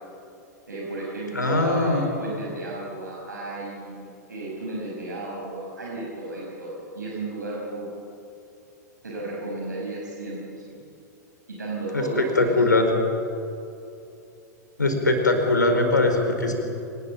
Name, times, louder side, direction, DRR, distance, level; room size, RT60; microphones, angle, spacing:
voice 1, 0.6-7.9 9.0-10.4 10.7-10.8 11.6-12.5, right 2 dB, 75° right, -4 dB, 5.6 m, -33 dB
voice 2, 1.3-2.1 11.9-12.0 12.4-12.9 14.8-16.5, left 2 dB, 80° left, 3 dB, 4.6 m, -21 dB
25.5 x 19.5 x 7.2 m, 2.7 s
figure-of-eight pair, 95°, 10 cm